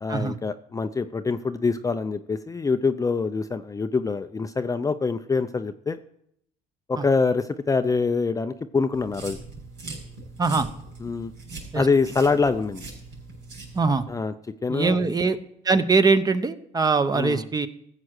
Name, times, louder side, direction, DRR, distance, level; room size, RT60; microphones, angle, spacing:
voice 1, 0.0-6.0 6.9-9.4 11.0-11.3 11.7-12.8 14.1-14.3 14.6-15.0 17.1-17.5, left 4 dB, 20° left, 9 dB, 0.5 m, -25 dB
sound 1, 8.9-14.0, right 3 dB, 90° right, 7.0 m, -41 dB
voice 2, 14.7-15.4 15.6-17.7, right 4 dB, 20° right, 11 dB, 0.9 m, -22 dB
14.5 x 7.5 x 6.5 m, 0.72 s
cardioid pair, 110°, 17 cm